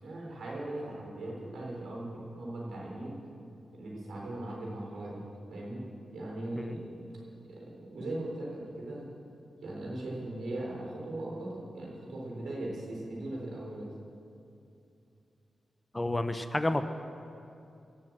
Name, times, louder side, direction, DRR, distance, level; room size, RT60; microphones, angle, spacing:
voice 1, 0.0-3.2 3.7-5.2 5.5-5.8 6.1-7.1 7.5-9.0 9.6-13.9, right 1 dB, 80° right, -3 dB, 3.9 m, -39 dB
voice 2, 15.9-16.8, left 2 dB, 25° left, 9 dB, 0.8 m, -30 dB
16.0 x 7.7 x 7.4 m, 2.6 s
supercardioid pair, 40°, 0 cm